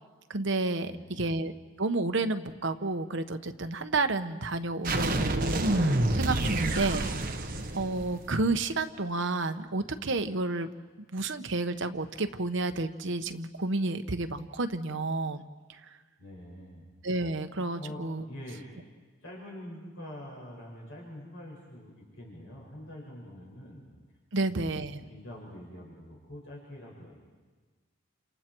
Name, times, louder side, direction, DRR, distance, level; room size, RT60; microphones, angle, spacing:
voice 1, 0.3-1.5 1.8-7.3 7.7-10.7 11.1-15.4 17.0-18.2 24.3-25.0, right 2 dB, 60° right, 8 dB, 1.0 m, -31 dB
voice 2, 0.8-1.3 16.2-16.9 17.8-18.7 19.2-23.8 24.3-24.8 25.1-27.2, left 1 dB, 60° left, -4 dB, 5.9 m, -45 dB
sound 1, 4.8-8.5, right 1 dB, 40° right, 1.4 m, -28 dB
29.5 x 28.0 x 4.6 m, 1.4 s
head